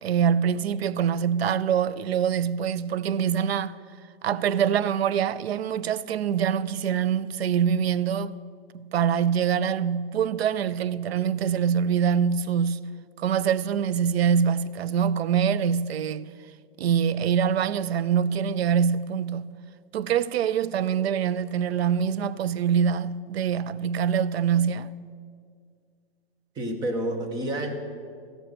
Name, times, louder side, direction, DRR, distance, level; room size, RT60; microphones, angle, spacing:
voice 1, 0.0-3.8 4.2-8.3 8.7-12.9 13.2-16.3 16.8-19.5 19.9-24.9, right 8 dB, 85° right, 0.5 m, -24 dB
voice 2, 26.5-27.7, right 1 dB, 15° right, 0.7 m, -29 dB
13.5 x 6.0 x 6.6 m
hypercardioid pair, 155°, 30 cm